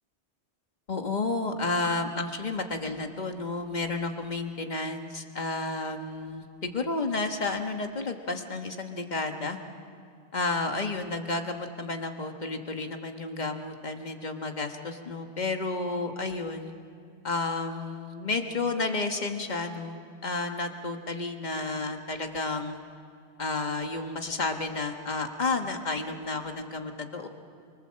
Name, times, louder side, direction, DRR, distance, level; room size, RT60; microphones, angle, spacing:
voice 1, 0.9-9.6 10.3-16.7 17.2-22.8 23.4-27.3, left 3 dB, 40° left, 5 dB, 1.6 m, -31 dB
25.0 x 24.5 x 7.6 m, 2.4 s
omnidirectional pair, 1.1 m